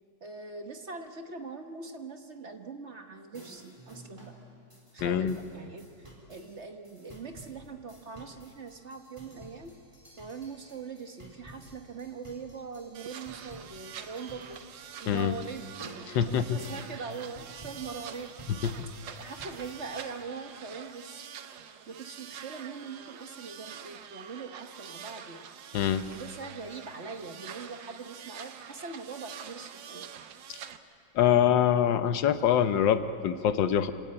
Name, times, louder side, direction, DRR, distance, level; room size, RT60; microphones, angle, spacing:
voice 1, 0.2-4.3 4.9-9.7 10.2-14.6 15.0-15.7 16.3-18.3 19.1-21.2 21.9-25.5 26.1-30.1, right 4 dB, 45° right, 5 dB, 1.3 m, -42 dB
sound 1, 3.3-19.9, right 1 dB, 15° right, 4.0 m, -52 dB
voice 2, 5.0-5.4 15.1-15.3 16.1-16.6 18.6-18.7 25.7-26.0 30.5-30.6 31.1-33.9, left 9 dB, 85° left, 10 dB, 1.6 m, -24 dB
sound 2, 12.9-30.8, right 8 dB, 85° right, 1.7 m, -46 dB
27.0 x 18.0 x 8.7 m, 2.6 s
omnidirectional pair, 1.9 m